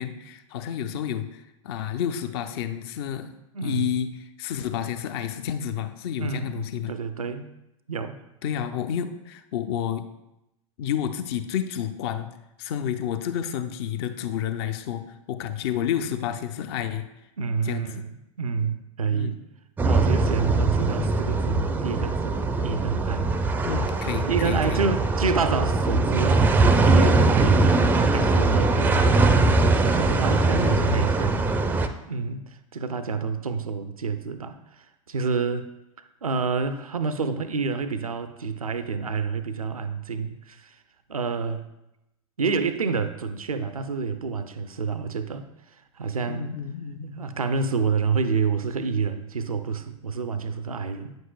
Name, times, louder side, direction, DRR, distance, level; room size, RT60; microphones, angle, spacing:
voice 1, 0.0-3.4 3.6-6.9 8.4-10.1 10.8-12.3 12.6-17.1 17.6-17.9 19.1-19.4 23.7-24.8 30.5-31.1 46.3-47.1, left 9 dB, 45° left, 10 dB, 0.6 m, -30 dB
voice 2, 3.5-4.0 6.2-6.6 6.9-7.5 7.9-8.2 17.4-19.4 19.8-23.6 24.3-26.5 26.8-27.8 28.1-29.5 29.9-35.7 36.0-40.8 41.1-41.7 42.4-46.5 47.0-51.2, right 5 dB, 80° right, 10 dB, 0.5 m, -28 dB
sound 1, 19.8-31.9, right 3 dB, 10° right, 0.4 m, -21 dB
9.5 x 7.8 x 2.3 m, 0.89 s
figure-of-eight pair, 90°, 18 cm